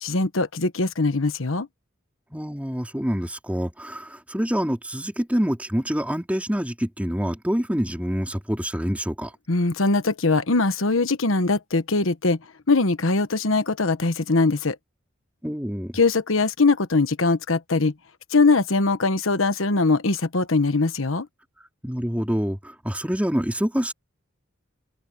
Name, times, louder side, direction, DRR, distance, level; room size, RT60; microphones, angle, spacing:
voice 1, 0.0-1.7 9.5-12.4 12.7-14.8 15.9-17.9 18.3-21.3, left 3 dB, 75° left, 1.2 m, -21 dB
voice 2, 2.3-9.3 15.4-16.0 21.8-23.9, equal, 5° right, 3.6 m, -26 dB
head